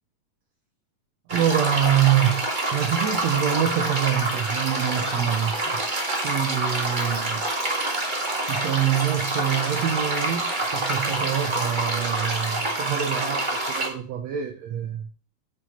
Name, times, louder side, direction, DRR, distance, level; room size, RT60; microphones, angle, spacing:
sound 1, 1.3-13.9, right 2 dB, 35° right, 0.7 m, -27 dB
voice 1, 1.3-5.8 6.2-7.4 8.5-15.1, right 10 dB, 85° right, 1.5 m, -25 dB
9.7 x 5.5 x 4.2 m
omnidirectional pair, 4.1 m